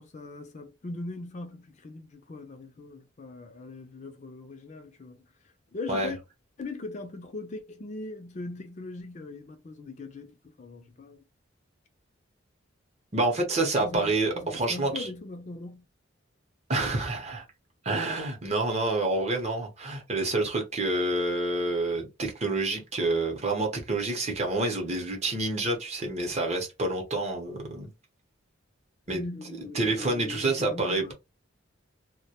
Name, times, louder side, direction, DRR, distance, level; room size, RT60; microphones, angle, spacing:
voice 1, 0.0-6.2 6.6-11.2 13.8-15.9 29.1-31.1, left 2 dB, 35° left, 0.4 m, -40 dB
voice 2, 13.1-15.1 16.7-17.4 17.8-27.9 29.1-29.2 29.7-31.1, right 2 dB, 35° right, 0.7 m, -28 dB
2.2 x 2.1 x 2.7 m
head